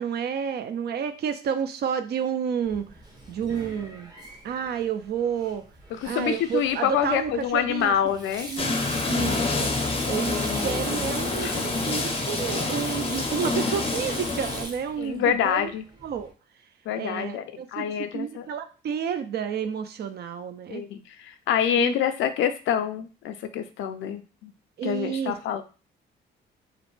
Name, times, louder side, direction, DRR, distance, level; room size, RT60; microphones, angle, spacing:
voice 1, 0.0-2.8 3.3-4.1 4.4-5.6 6.0-7.9 8.5-8.8 9.1-9.7 10.1-15.7 16.0-16.3 17.0-20.8 21.8-22.0 24.8-25.3, right 7 dB, 55° right, 9 dB, 0.4 m, -30 dB
Sink (filling or washing), 2.6-16.3, right 1 dB, 20° right, 0.7 m, -39 dB
voice 2, 5.9-8.5 11.4-11.6 15.0-15.8 16.9-18.5 20.7-24.5 24.8-25.6, left 9 dB, 75° left, 9 dB, 0.4 m, -26 dB
sound 1, 8.6-14.6, left 3 dB, 30° left, 0.5 m, -27 dB
2.5 x 2.1 x 3.1 m, 0.34 s
cardioid pair, 90°, 20 cm